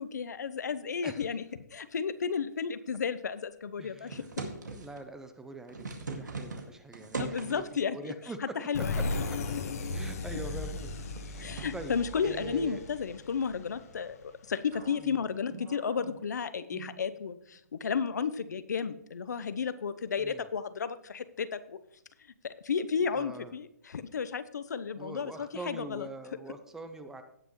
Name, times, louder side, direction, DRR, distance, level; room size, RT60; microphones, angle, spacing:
voice 1, 0.0-1.5 1.7-4.2 7.2-8.1 8.7-8.9 11.4-14.2 14.5-21.8 22.4-26.1, left 6 dB, 75° left, 13 dB, 0.8 m, -33 dB
voice 2, 3.8-4.3 4.7-7.6 7.9-8.6 9.9-11.9 12.2-12.8 15.0-15.3 20.2-20.5 23.1-23.5 25.0-27.2, right 2 dB, 5° right, 8 dB, 0.6 m, -44 dB
sound 1, 4.1-5.0 5.5-7.8 8.7-9.3 9.6-9.7 10.3-11.8 14.7-14.9, right 3 dB, 90° right, 2.0 m, -40 dB
sound 2, 8.7-14.3, left 3 dB, 55° left, 1.4 m, -36 dB
sound 3, 14.7-17.6 17.9-18.1 18.7-19.2, right 6 dB, 35° right, 2.3 m, -51 dB
17.0 x 6.1 x 3.1 m, 0.72 s
hypercardioid pair, 150°, 10 cm